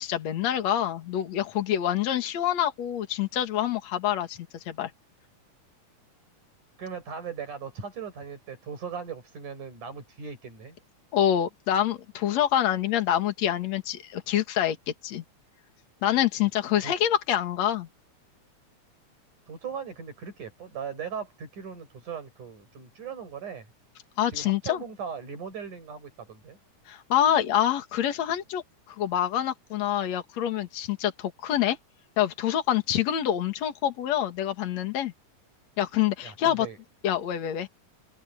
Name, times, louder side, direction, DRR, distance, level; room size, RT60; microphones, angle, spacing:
voice 1, 0.0-4.4 4.7-4.9 11.1-14.8 15.0-15.2 16.0-17.9 24.2-24.8 26.9-28.6 28.9-31.8 32.2-35.1 35.8-36.7 37.0-37.7, left 11 dB, 65° left, 2.9 m, -26 dB
voice 2, 6.8-10.8 16.8-16.9 19.5-23.7 24.3-26.6 36.2-36.8, right 6 dB, 85° right, 7.6 m, -38 dB
open air
omnidirectional pair, 3.5 m